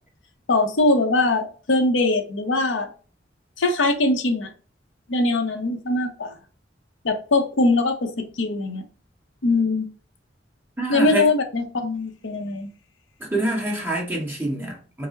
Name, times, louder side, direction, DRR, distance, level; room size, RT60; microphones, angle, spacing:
voice 1, 0.5-2.9 3.6-4.5 5.1-6.3 7.0-8.8 9.4-9.9 10.9-12.7, left 2 dB, 85° left, 0.7 m, -22 dB
voice 2, 10.8-11.3 13.2-15.1, right 1 dB, 10° right, 1.2 m, -26 dB
4.8 x 2.0 x 3.7 m
head